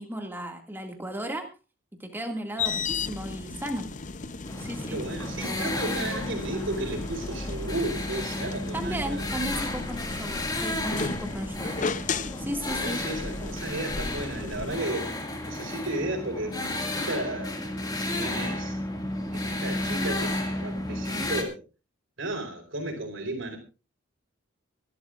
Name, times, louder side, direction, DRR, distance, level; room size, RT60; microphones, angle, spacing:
voice 1, 0.0-1.5 2.0-3.9 4.6-5.0 8.7-11.8 12.4-13.0, right 1 dB, 10° right, 3 dB, 2.1 m, -35 dB
sound 1, 2.6-14.8, left 4 dB, 40° left, 0.6 m, -35 dB
sound 2, 4.4-21.4, left 1 dB, 20° left, 2.1 m, -33 dB
voice 2, 4.9-9.3 11.6-12.0 12.8-15.1 15.4-18.8 19.3-21.6 22.2-23.6, right 2 dB, 65° right, 3 dB, 4.4 m, -34 dB
25.0 x 12.0 x 2.5 m, 0.31 s
head